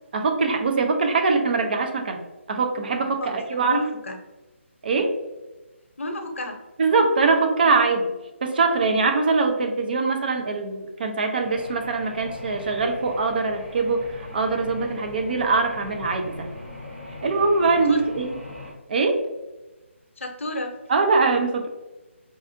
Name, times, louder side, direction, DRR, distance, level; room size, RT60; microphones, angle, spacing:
voice 1, 0.1-2.2 2.5-3.8 4.8-5.1 6.8-8.1 8.4-16.5 17.2-18.3 18.9-19.2 20.9-21.7, right 4 dB, 45° right, 4 dB, 0.6 m, -22 dB
voice 2, 3.2-4.2 6.0-6.6 17.9-18.0 20.2-20.7, left 1 dB, 70° left, 3 dB, 0.7 m, -31 dB
sound 1, 11.4-18.7, left 1 dB, 15° right, 1.2 m, -39 dB
4.7 x 2.4 x 2.6 m, 1.1 s
figure-of-eight pair, 150°, 7 cm